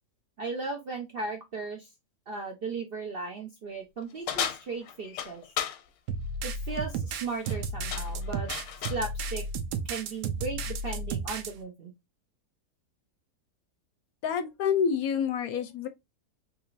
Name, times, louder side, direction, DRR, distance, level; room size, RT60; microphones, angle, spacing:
voice 1, 0.4-1.9 2.3-5.4 6.4-8.5 8.9-9.4 9.9-11.9 15.5-15.6, right 3 dB, 55° right, 0.6 m, -36 dB
sound 1, 4.3-5.8 7.3-7.6 7.9-9.1, left 9 dB, 90° left, 1.3 m, -34 dB
sound 2, 6.1-11.5, right 3 dB, 80° right, 1.2 m, -33 dB
voice 2, 14.2-15.9, left 7 dB, 70° left, 1.0 m, -28 dB
3.8 x 3.2 x 2.4 m
omnidirectional pair, 1.8 m